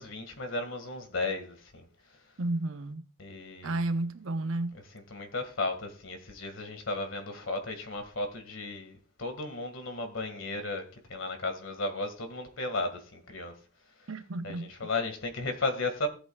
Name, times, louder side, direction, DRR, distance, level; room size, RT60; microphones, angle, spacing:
voice 1, 0.0-1.9 3.2-3.9 5.1-13.5 14.4-16.1, left 2 dB, 70° left, 1.9 m, -35 dB
voice 2, 2.4-3.0 3.6-4.8 14.1-14.7, right 2 dB, 80° right, 0.8 m, -32 dB
17.5 x 7.9 x 2.4 m
head